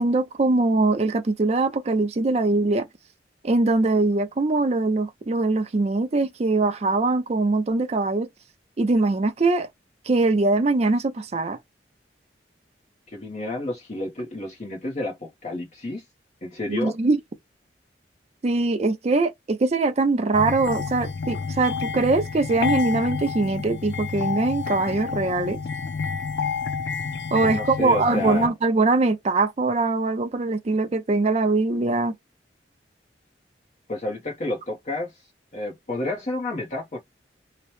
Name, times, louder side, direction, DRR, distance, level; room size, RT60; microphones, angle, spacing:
voice 1, 0.0-2.9 3.4-8.3 8.8-9.7 10.1-11.6 16.7-17.2 18.4-25.6 27.3-32.1, right 3 dB, 35° right, 0.4 m, -22 dB
voice 2, 13.1-16.0 16.4-16.9 27.4-28.5 33.9-35.1 35.5-37.0, left 2 dB, 40° left, 0.7 m, -30 dB
sound 1, 20.3-28.5, left 5 dB, 85° left, 0.5 m, -29 dB
2.8 x 2.0 x 3.1 m
head